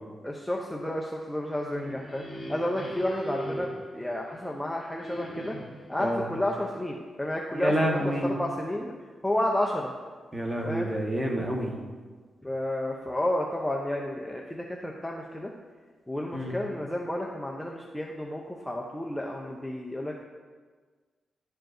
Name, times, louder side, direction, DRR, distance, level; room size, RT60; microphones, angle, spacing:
voice 1, 0.2-5.6 5.9-8.9 9.2-9.9 10.6-10.9 12.4-15.5 16.1-20.2, left 1 dB, 5° left, -1 dB, 0.6 m, -31 dB
sound 1, 1.4-4.5 5.0-6.0, equal, 30° left, 2.1 m, -39 dB
voice 2, 7.5-8.3 10.3-11.8 16.3-16.5, equal, 15° right, -1 dB, 1.3 m, -28 dB
11.0 x 4.5 x 2.6 m, 1.5 s
cardioid pair, 90°, 0 cm